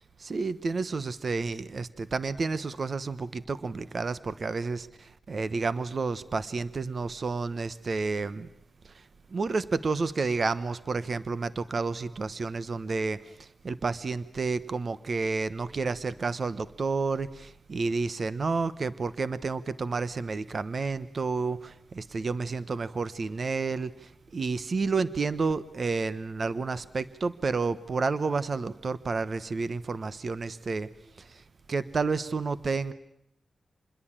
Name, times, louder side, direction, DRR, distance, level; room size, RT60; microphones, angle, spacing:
voice 1, 0.2-8.5 8.8-9.0 9.3-30.9 31.2-32.9, right 4 dB, 50° right, 14 dB, 1.1 m, -30 dB
27.5 x 21.0 x 8.9 m, 0.76 s
wide cardioid pair, 100°, 0 cm